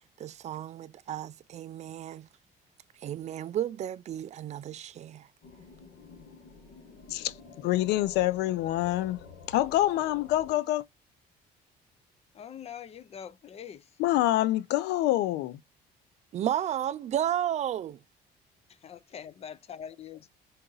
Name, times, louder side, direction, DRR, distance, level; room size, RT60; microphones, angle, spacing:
voice 1, 0.2-2.3 3.0-5.3 16.3-18.0, right 11 dB, 40° right, 0.4 m, -33 dB
sound 1, 5.4-10.6, left 4 dB, 70° left, 1.3 m, -50 dB
voice 2, 7.1-10.8 14.0-15.6, left 15 dB, 90° left, 0.5 m, -26 dB
voice 3, 12.3-13.9 18.8-20.2, left 8 dB, 35° left, 0.5 m, -43 dB
3.9 x 2.6 x 3.9 m
cardioid pair, 110°, 17 cm